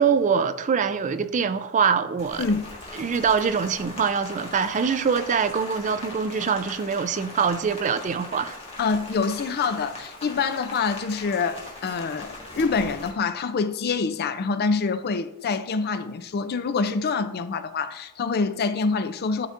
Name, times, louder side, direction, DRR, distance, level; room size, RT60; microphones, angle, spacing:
voice 1, 0.0-2.5 3.0-8.5, right 6 dB, 35° right, 0.3 m, -24 dB
Rain, 2.2-13.1, left 2 dB, 25° left, 1.5 m, -40 dB
voice 2, 2.4-2.7 8.8-19.5, left 4 dB, 45° left, 0.4 m, -26 dB
11.5 x 4.0 x 2.5 m
head